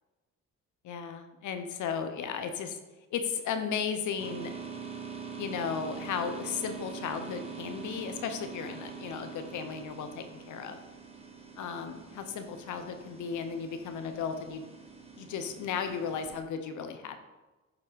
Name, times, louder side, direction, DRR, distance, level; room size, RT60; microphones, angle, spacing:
voice 1, 0.8-2.8 3.1-4.5 5.4-10.8 11.6-14.6 15.2-17.2, left 6 dB, 75° left, 8 dB, 0.9 m, -35 dB
sound 1, 4.2-16.4, right 5 dB, 20° right, 1.2 m, -44 dB
7.2 x 3.5 x 5.0 m, 1.1 s
cardioid pair, 90°, 30 cm